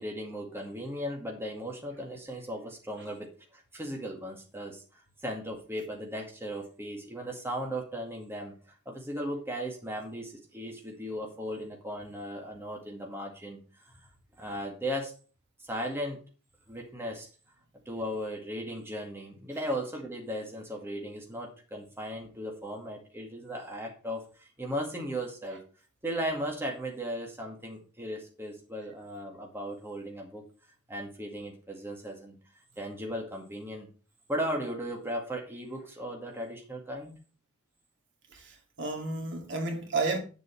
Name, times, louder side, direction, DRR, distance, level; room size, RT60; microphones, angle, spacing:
voice 1, 0.0-4.8 5.2-8.5 8.9-13.9 14.4-15.1 15.6-16.2 16.7-17.3 17.9-25.6 26.0-30.4 30.9-32.4 32.8-33.9 34.3-37.2, equal, 10° right, 2.0 m, -37 dB
voice 2, 38.3-40.2, right 3 dB, 55° right, 2.3 m, -32 dB
9.4 x 7.1 x 4.6 m
head